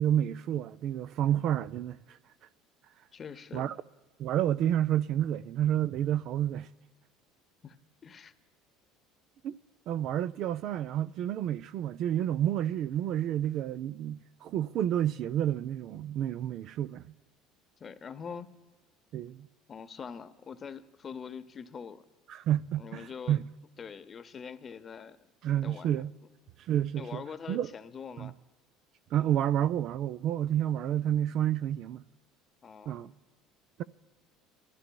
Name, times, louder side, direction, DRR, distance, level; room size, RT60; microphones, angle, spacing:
voice 1, 0.0-2.2 3.5-3.8 4.2-6.7 9.4-9.5 9.9-17.1 19.1-19.5 22.3-23.5 25.4-26.1 26.7-27.2 27.5-27.7 28.2-28.3 29.1-32.0 32.9-33.1, right 11 dB, 60° right, 0.4 m, -29 dB
voice 2, 3.1-3.8 7.6-7.8 8.0-8.3 17.8-18.5 19.7-22.0 22.8-23.4 23.8-25.2 25.6-25.9 26.9-28.3 32.6-33.1, left 6 dB, 35° left, 0.7 m, -43 dB
23.0 x 14.0 x 2.3 m
supercardioid pair, 100°, 0 cm